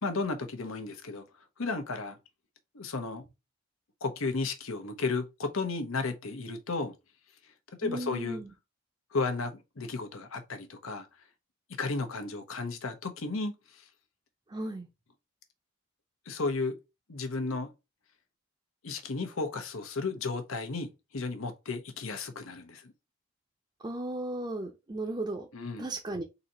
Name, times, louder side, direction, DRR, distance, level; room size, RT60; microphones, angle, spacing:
voice 1, 0.0-1.2 1.6-2.2 2.7-3.2 4.0-6.9 7.8-8.4 9.1-11.1 11.8-13.9 16.3-16.8 17.1-17.7 18.8-22.9 25.5-25.9, left 3 dB, 85° left, 0.9 m, -34 dB
voice 2, 7.8-8.5 14.5-14.9 23.8-25.5 25.8-26.2, right 1 dB, 20° right, 0.5 m, -35 dB
4.0 x 2.7 x 4.1 m
head